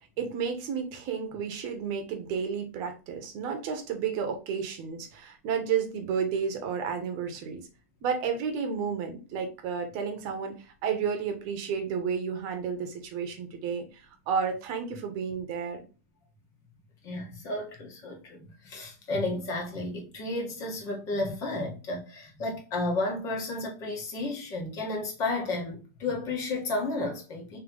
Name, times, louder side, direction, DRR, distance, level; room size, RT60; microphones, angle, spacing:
voice 1, 0.2-7.7 8.0-13.8 14.3-15.8, right 6 dB, 40° right, 1.1 m, -31 dB
voice 2, 17.0-27.6, left 2 dB, 35° left, 1.5 m, -32 dB
3.3 x 3.1 x 3.8 m
supercardioid pair, 145°, 9 cm